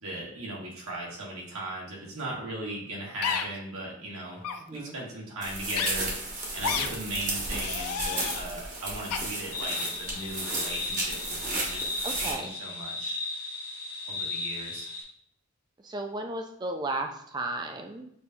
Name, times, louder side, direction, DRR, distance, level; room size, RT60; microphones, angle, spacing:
voice 1, 0.0-4.4 4.7-6.1 6.5-11.9 12.2-13.2 14.0-14.9, right 1 dB, 80° right, -3 dB, 1.3 m, -37 dB
sound 1, 3.2-3.4 4.4-4.6 5.7-5.9 6.6-6.9 7.5-8.4 9.1-9.2, left 7 dB, 85° left, 0.4 m, -30 dB
sound 2, 5.4-12.3, right 2 dB, 35° right, 0.9 m, -33 dB
sound 3, 9.5-15.0, left 3 dB, 65° left, 1.4 m, -36 dB
voice 2, 12.0-12.5 15.8-18.1, right 2 dB, 20° right, 4 dB, 0.3 m, -34 dB
6.1 x 2.7 x 2.2 m, 0.70 s
head